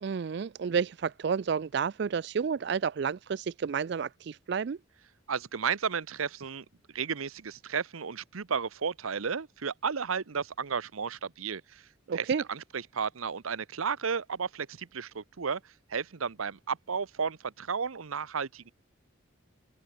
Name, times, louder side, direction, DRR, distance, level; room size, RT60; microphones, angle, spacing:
voice 1, 0.0-4.8 12.1-12.4, right 6 dB, 55° right, 0.3 m, -30 dB
voice 2, 5.3-6.6 6.9-11.8 12.1-15.6 15.9-18.7, right 6 dB, 90° right, 0.8 m, -33 dB
open air
head